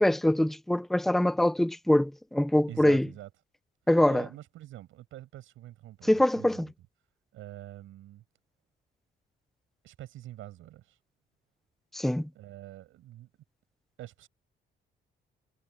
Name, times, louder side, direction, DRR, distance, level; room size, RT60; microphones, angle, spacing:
voice 1, 0.0-3.1 3.9-4.2 6.0-6.7 11.9-12.3, left 1 dB, ahead, 0.6 m, -24 dB
voice 2, 2.7-3.3 4.0-6.7 7.3-8.2 9.8-11.0 12.3-13.3 14.0-14.3, right 14 dB, 85° right, 7.8 m, -45 dB
cardioid pair, 90°, 20 cm